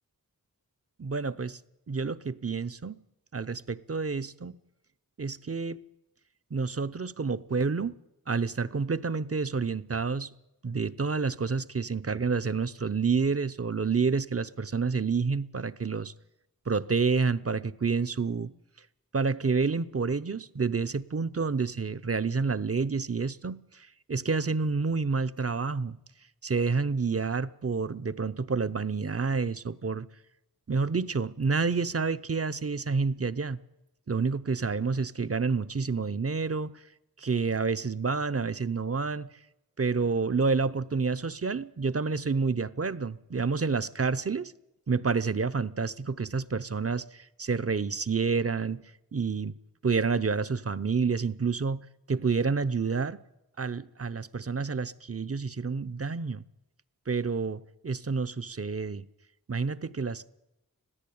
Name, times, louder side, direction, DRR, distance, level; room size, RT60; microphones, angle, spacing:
voice 1, 1.0-1.6 1.9-3.0 3.3-4.6 5.2-5.8 6.5-8.0 8.3-10.3 10.6-16.1 16.7-18.5 19.1-26.0 26.4-30.1 30.7-33.6 34.1-36.7 37.2-39.3 39.8-44.5 44.9-48.8 49.1-49.5 49.8-53.2 53.6-56.4 57.1-59.1 59.5-60.3, right 4 dB, 40° right, 0.8 m, -29 dB
21.0 x 14.5 x 8.7 m
cardioid pair, 45°, 36 cm